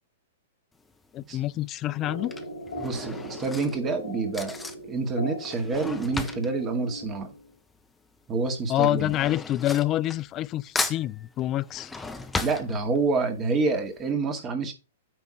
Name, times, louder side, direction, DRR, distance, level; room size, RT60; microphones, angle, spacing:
Drawer open or close / Cutlery silverware, 0.7-1.1 2.0-7.9 8.1-10.5 10.7-13.3 13.7-13.8 14.0-14.1, left 3 dB, 10° left, 0.9 m, -36 dB
voice 1, 1.1-2.3 8.7-11.9, left 14 dB, 30° left, 0.4 m, -27 dB
sound 1, 2.0-7.5, left 1 dB, 85° left, 1.3 m, -39 dB
voice 2, 2.8-4.6 4.9-7.3 8.3-9.1 12.4-14.7, right 4 dB, 25° right, 2.0 m, -27 dB
9.4 x 3.5 x 4.6 m
figure-of-eight pair, 110°, 0 cm